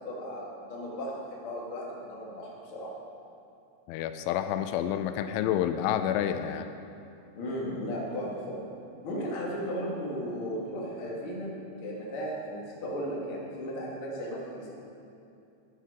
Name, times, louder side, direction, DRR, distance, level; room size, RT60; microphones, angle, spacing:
voice 1, 0.0-2.9 7.3-8.6 9.0-11.6 11.8-14.7, equal, 40° left, -5 dB, 2.2 m, -35 dB
voice 2, 3.9-6.7, left 10 dB, 85° left, 9 dB, 3.0 m, -29 dB
12.5 x 11.0 x 5.0 m, 2.7 s
omnidirectional pair, 5.4 m